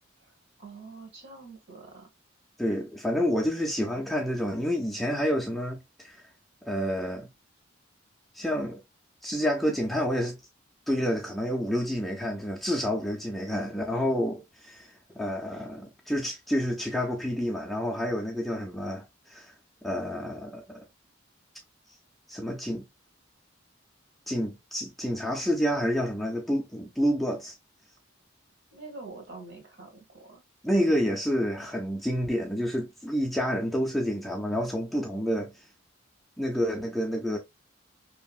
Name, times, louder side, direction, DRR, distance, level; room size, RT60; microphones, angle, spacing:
voice 1, 0.6-2.1 28.7-30.4, right 3 dB, 60° right, 1.1 m, -45 dB
voice 2, 2.6-6.2 6.6-7.3 8.3-8.8 9.2-10.4 10.9-14.9 15.2-19.5 19.8-20.9 22.3-22.9 24.3-27.5 30.6-35.5 36.4-37.4, equal, ahead, 0.3 m, -29 dB
2.7 x 2.4 x 2.3 m
head